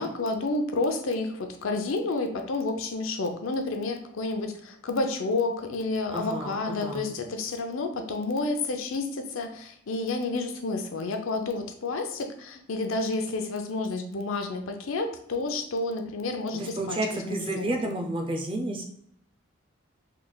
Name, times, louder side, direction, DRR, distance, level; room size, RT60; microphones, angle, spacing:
voice 1, 0.0-17.0 17.3-17.9, left 3 dB, 80° left, 5 dB, 0.5 m, -30 dB
voice 2, 6.1-7.1 16.5-18.8, right 1 dB, 25° right, 3 dB, 0.5 m, -31 dB
3.2 x 2.2 x 3.9 m, 0.70 s
head